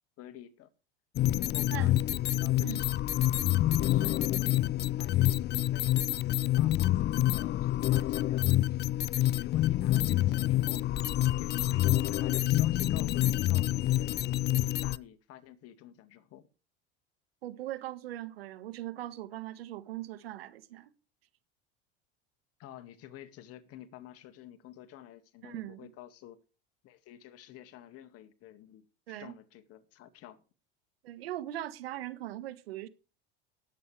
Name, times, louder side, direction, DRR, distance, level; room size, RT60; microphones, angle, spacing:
voice 1, 0.2-0.7 1.3-2.8 3.8-4.7 5.0-6.9 7.3-10.9 11.4-16.5 22.6-26.4 26.8-30.4, left 12 dB, 55° left, 2.0 m, -50 dB
sound 1, 1.2-15.0, left 14 dB, 35° left, 0.5 m, -27 dB
voice 2, 17.4-20.9 25.4-25.9 29.1-29.3 31.0-32.9, right 14 dB, 85° right, 1.5 m, -40 dB
19.0 x 8.7 x 3.3 m
hypercardioid pair, 90°, 29 cm